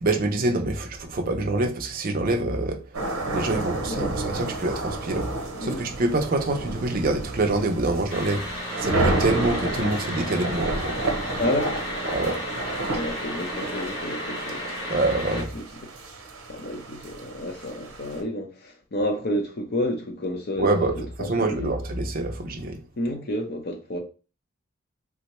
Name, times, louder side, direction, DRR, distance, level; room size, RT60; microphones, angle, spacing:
voice 1, 0.0-2.8 3.3-5.3 5.6-8.4 8.8-11.0 12.1-12.4 14.9-15.5 20.6-20.9 21.3-22.8, right 2 dB, 40° right, 0.4 m, -25 dB
sound 1, 2.9-18.2, right 2 dB, 90° right, 0.7 m, -31 dB
voice 2, 3.5-4.1 5.6-5.8 11.4-11.8 12.9-14.7 15.2-15.6 16.5-21.8 23.0-24.0, left 1 dB, 50° left, 0.6 m, -30 dB
sound 2, 8.1-15.4, left 1 dB, 90° left, 1.1 m, -33 dB
3.6 x 2.1 x 2.9 m
head